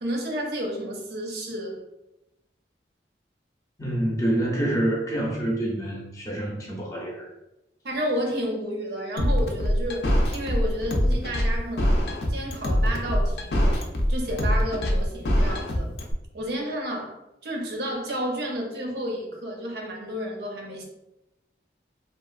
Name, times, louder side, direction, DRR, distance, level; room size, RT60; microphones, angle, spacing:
voice 1, 0.0-1.8 7.8-15.9 16.3-17.2 17.4-20.8, equal, 70° right, 0 dB, 0.6 m, -31 dB
voice 2, 3.8-7.3, right 1 dB, 20° left, -3 dB, 0.6 m, -27 dB
sound 1, 9.2-16.1, equal, 70° left, 0.5 m, -23 dB
2.9 x 2.4 x 2.4 m, 0.91 s
head